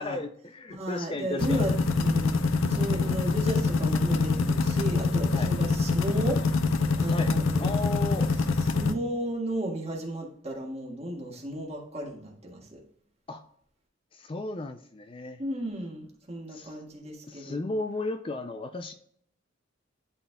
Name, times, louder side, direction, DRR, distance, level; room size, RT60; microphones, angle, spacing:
voice 1, 0.0-1.6 5.3-5.5 7.1-8.3 13.3-13.4 14.1-15.4 16.5-16.8 17.3-18.9, left 2 dB, 25° left, 8 dB, 0.4 m, -35 dB
voice 2, 0.7-1.7 2.0-6.4 7.0-7.8 8.7-12.8 15.4-17.6, right 1 dB, 30° right, 0 dB, 1.6 m, -34 dB
sound 1, 1.4-8.9, left 3 dB, 85° left, 0.6 m, -25 dB
11.5 x 4.2 x 2.2 m, 0.65 s
head